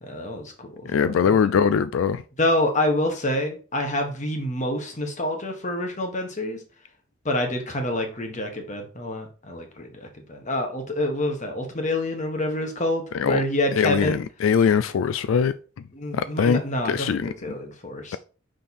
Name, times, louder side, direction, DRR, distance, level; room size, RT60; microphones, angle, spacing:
voice 1, 0.1-0.9 1.2-1.3 2.4-6.6 7.2-14.2 15.9-18.2, left 1 dB, 40° left, 1.4 m, -27 dB
voice 2, 0.9-2.2 13.1-13.4 13.7-15.5 16.1-17.3, left 6 dB, 90° left, 0.3 m, -22 dB
5.5 x 5.2 x 4.3 m
head